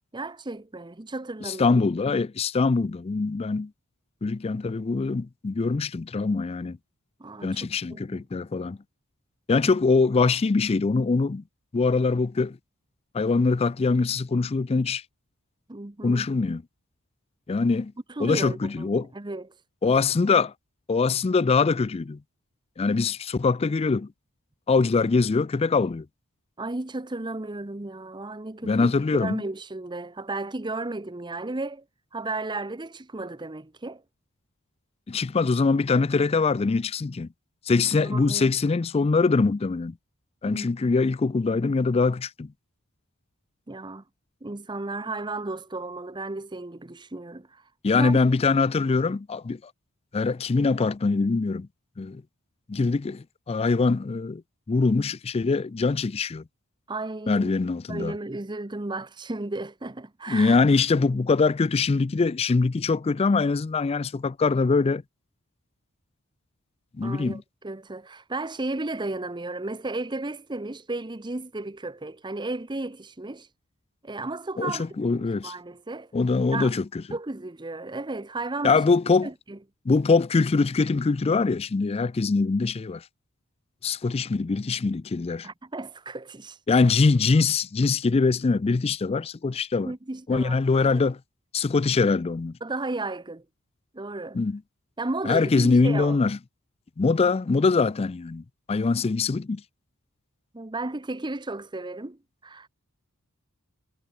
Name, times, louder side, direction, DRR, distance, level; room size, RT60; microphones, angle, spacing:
voice 1, 0.1-1.8 7.2-8.2 15.7-16.3 18.1-19.5 26.6-28.9 29.2-31.8 32.1-34.0 38.0-38.5 40.5-40.7 43.7-44.0 44.4-47.6 48.0-48.2 56.9-57.5 57.9-60.6 67.0-73.5 74.0-76.1 76.5-76.7 77.1-78.8 79.2-79.6 85.4-86.6 89.8-91.0 92.6-93.4 93.9-94.4 95.0-96.2 100.5-102.7, right 2 dB, 20° right, 0.9 m, -34 dB
voice 2, 1.5-3.7 4.2-6.8 7.4-8.8 9.5-11.4 11.7-12.6 13.1-15.0 16.0-16.6 17.5-17.9 18.2-19.1 19.8-20.5 20.9-22.2 22.8-24.1 24.7-26.1 28.6-29.4 35.1-37.3 37.7-39.9 40.4-42.5 47.8-49.6 50.1-51.7 52.0-52.2 52.7-54.4 54.7-56.4 57.3-58.1 60.3-65.0 67.0-67.4 74.6-75.5 76.1-76.8 78.6-79.3 79.9-83.0 83.8-85.5 86.7-89.9 90.3-91.2 91.5-92.5 94.3-94.6 95.2-96.4 97.0-99.6, left 4 dB, 30° left, 0.4 m, -23 dB
head